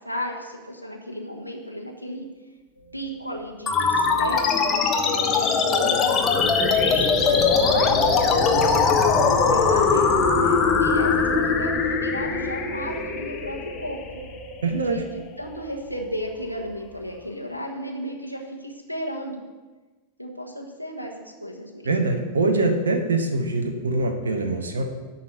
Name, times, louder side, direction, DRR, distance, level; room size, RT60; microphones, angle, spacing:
voice 1, 0.0-2.2 2.9-6.2 6.7-8.9 9.2-14.0 14.8-19.4 20.2-21.9, equal, 90° right, 0 dB, 1.3 m, -34 dB
sound 1, 2.8-3.1 3.3-3.4 5.9-17.3, equal, 85° left, 1.3 m, -33 dB
sound 2, 3.7-14.6, left 5 dB, 25° left, 1.1 m, -21 dB
voice 2, 14.6-15.0 21.8-24.8, right 2 dB, 70° right, 5 dB, 1.1 m, -23 dB
11.0 x 4.2 x 7.8 m, 1.3 s
figure-of-eight pair, 90°, 0 cm